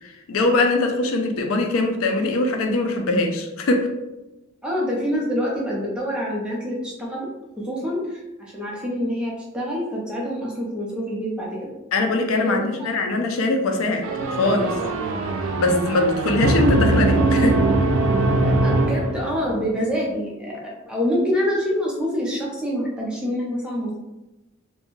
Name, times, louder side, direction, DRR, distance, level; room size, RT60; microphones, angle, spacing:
voice 1, 0.0-3.9 11.9-14.1 14.4-14.7 15.4-17.6, left 2 dB, 85° left, 4 dB, 0.4 m, -22 dB
voice 2, 4.6-7.3 7.6-11.7 12.3-12.9 18.6-24.0, equal, 5° right, -4 dB, 0.6 m, -26 dB
sound 1, 14.0-19.6, right 2 dB, 85° right, 0.4 m, -21 dB
2.6 x 2.2 x 3.0 m, 1.0 s
head